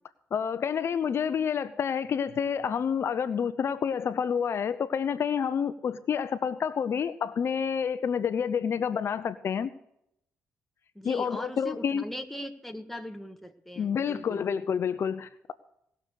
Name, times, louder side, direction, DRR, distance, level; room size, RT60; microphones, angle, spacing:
voice 1, 0.3-9.7 11.0-12.0 13.8-15.5, left 7 dB, 55° left, 12 dB, 0.7 m, -28 dB
voice 2, 10.9-14.4, equal, 5° left, 5 dB, 1.6 m, -40 dB
19.0 x 6.8 x 6.4 m, 0.76 s
cardioid pair, 70°, 5 cm